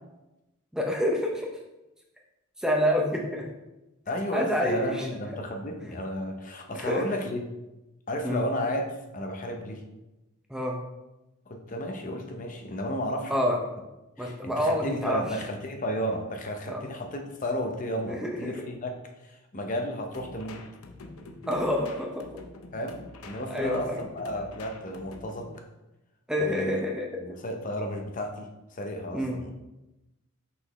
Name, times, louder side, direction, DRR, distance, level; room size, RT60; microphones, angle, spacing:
voice 1, 0.7-1.5 2.6-3.5 4.3-5.1 6.7-7.0 8.2-8.4 10.5-10.8 13.3-13.6 14.2-15.2 16.7-16.8 18.1-18.5 21.5-22.2 23.5-24.0 26.3-27.1 29.1-29.4, equal, 5° right, 0 dB, 0.5 m, -27 dB
voice 2, 4.1-7.4 8.1-8.9 9.1-9.8 11.5-13.3 14.2-18.9 19.2-20.6 22.7-23.0 23.2-25.5 26.4-26.8 27.2-29.5, equal, 35° left, 3 dB, 0.7 m, -33 dB
sound 1, 20.1-25.6, left 2 dB, 85° left, 0.7 m, -46 dB
6.0 x 5.5 x 3.1 m, 0.99 s
head